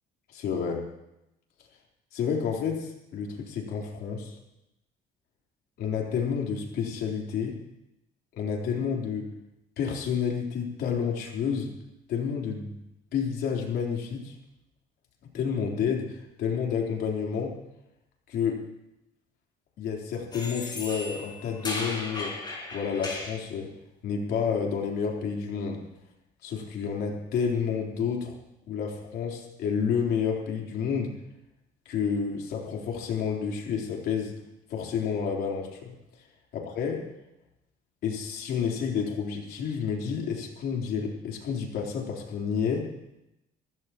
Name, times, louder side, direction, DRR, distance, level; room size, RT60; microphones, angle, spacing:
voice 1, 0.3-0.8 2.1-4.4 5.8-7.6 8.3-9.3 9.8-11.7 12.1-12.7 13.1-14.3 15.3-17.6 18.3-18.6 19.8-22.4 22.7-23.7 24.0-25.8 26.4-28.4 28.7-31.1 31.9-34.4 34.7-35.9 36.5-37.0 38.0-42.9, left 6 dB, 75° left, -1 dB, 3.8 m, -30 dB
sound 1, 20.3-23.4, left 2 dB, 25° left, 5.5 m, -36 dB
25.5 x 15.0 x 3.0 m, 0.88 s
cardioid pair, 110°, 17 cm